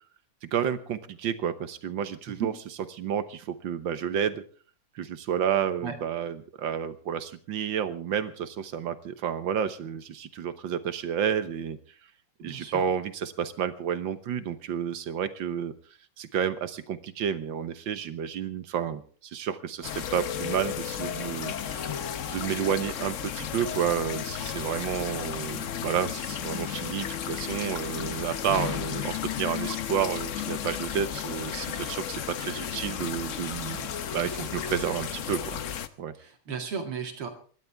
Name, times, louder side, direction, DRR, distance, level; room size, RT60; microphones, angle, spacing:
voice 1, 0.4-2.5 3.0-4.4 5.0-11.8 12.4-15.7 16.2-35.6 36.0-36.1, right 8 dB, 65° right, 12 dB, 1.7 m, -31 dB
voice 2, 12.4-12.8 36.2-37.3, right 6 dB, 90° right, 4 dB, 3.1 m, -35 dB
sound 1, 19.8-35.9, left 9 dB, 70° left, 0.7 m, -34 dB
26.0 x 12.0 x 3.5 m, 0.42 s
omnidirectional pair, 2.4 m